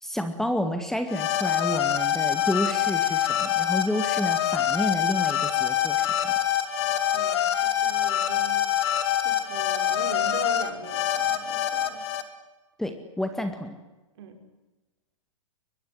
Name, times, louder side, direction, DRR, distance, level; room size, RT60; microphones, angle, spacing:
voice 1, 0.0-6.3 12.8-13.8, left 1 dB, ahead, 7 dB, 2.0 m, -30 dB
sound 1, 1.1-12.2, left 10 dB, 55° left, 3.2 m, -25 dB
voice 2, 7.1-8.7 9.2-12.0 14.2-14.4, right 6 dB, 55° right, 6 dB, 5.7 m, -40 dB
23.0 x 22.0 x 9.9 m, 1.1 s
hypercardioid pair, 120°, 16 cm